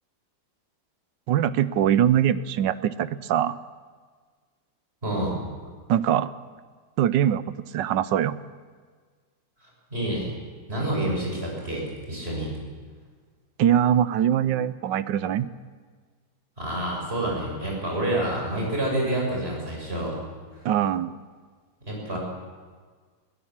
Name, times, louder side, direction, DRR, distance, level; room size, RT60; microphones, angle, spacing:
voice 1, 1.3-3.6 5.9-6.3 7.0-7.4 7.7-8.4 13.6-15.5 20.6-21.1, right 10 dB, 75° right, 15 dB, 1.4 m, -22 dB
voice 2, 5.0-5.4 9.6-10.3 10.7-12.5 16.6-20.2 20.5-20.7 21.8-22.2, right 1 dB, 30° right, -2 dB, 7.1 m, -28 dB
22.0 x 17.0 x 7.4 m, 1.5 s
omnidirectional pair, 2.0 m